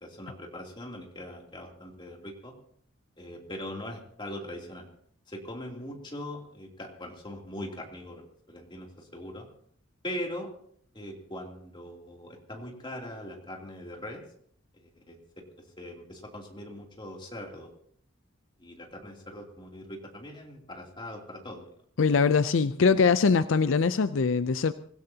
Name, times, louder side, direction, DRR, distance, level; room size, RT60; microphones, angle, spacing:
voice 1, 0.0-2.5 3.2-4.9 5.3-9.4 10.0-10.5 10.9-14.2 14.7-15.2 15.8-17.7 18.6-21.7, left 1 dB, 25° left, 0 dB, 2.9 m, -41 dB
voice 2, 22.0-24.7, left 5 dB, 70° left, 13 dB, 0.5 m, -22 dB
25.0 x 16.0 x 2.8 m, 0.63 s
head